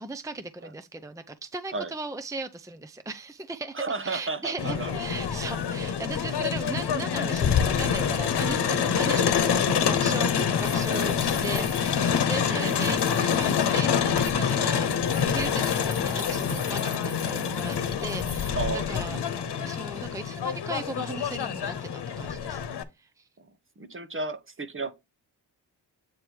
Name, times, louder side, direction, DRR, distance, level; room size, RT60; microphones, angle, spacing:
voice 1, 0.0-14.9 15.3-19.2 19.6-22.6 23.0-23.3, right 3 dB, 10° right, 0.7 m, -37 dB
voice 2, 3.7-5.2 9.1-9.2 12.5-13.0 18.5-19.7 23.4-23.5 23.8-24.9, right 3 dB, 30° right, 1.0 m, -34 dB
Crowd, 4.6-22.8, left 7 dB, 75° left, 1.1 m, -26 dB
sound 1, 10.3-18.5, left 3 dB, 20° left, 1.5 m, -43 dB
8.5 x 3.2 x 4.5 m
cardioid pair, 50°, 40 cm